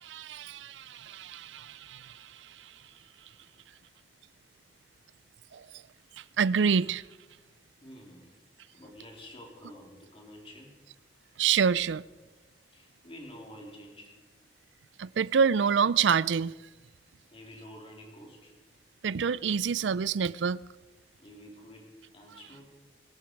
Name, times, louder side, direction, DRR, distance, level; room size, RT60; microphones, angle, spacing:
voice 1, 0.0-2.8 5.5-5.7 6.2-7.0 11.4-12.0 15.0-16.5 19.0-20.6, right 6 dB, 85° right, 0.4 m, -27 dB
voice 2, 7.8-8.4 8.7-10.7 12.7-14.2 17.3-18.5 21.2-22.7, equal, 30° left, 3.6 m, -49 dB
24.5 x 12.5 x 4.7 m
head